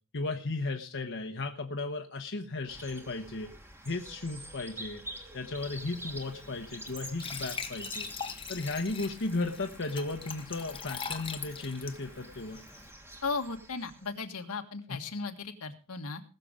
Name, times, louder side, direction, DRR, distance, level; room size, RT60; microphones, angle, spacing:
voice 1, 0.1-3.5 3.8-5.0 5.3-8.1 8.5-12.6 14.9-15.0, left 3 dB, 60° left, 4 dB, 1.2 m, -35 dB
sound 1, 2.7-14.2, right 1 dB, 10° right, 1.7 m, -47 dB
Glass / Trickle dribble / Fill (with liquid), 5.6-12.9, left 6 dB, 25° left, 1.1 m, -43 dB
voice 2, 13.2-16.2, left 4 dB, 80° left, 5 dB, 1.7 m, -36 dB
19.5 x 6.9 x 5.1 m, 0.38 s
head